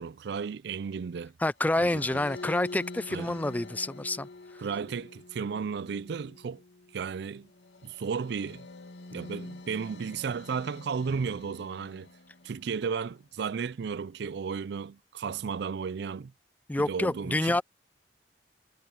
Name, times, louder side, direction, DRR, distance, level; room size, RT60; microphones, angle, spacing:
voice 1, 0.0-1.3 1.8-2.2 3.1-3.4 4.6-6.6 6.9-7.5 7.8-8.7 9.1-12.1 12.4-16.3 16.8-17.6, right 6 dB, 65° right, 0.4 m, -34 dB
voice 2, 1.4-4.3 16.7-17.6, left 2 dB, 10° left, 0.3 m, -28 dB
sound 1, 1.6-12.9, left 2 dB, 80° left, 2.5 m, -46 dB
head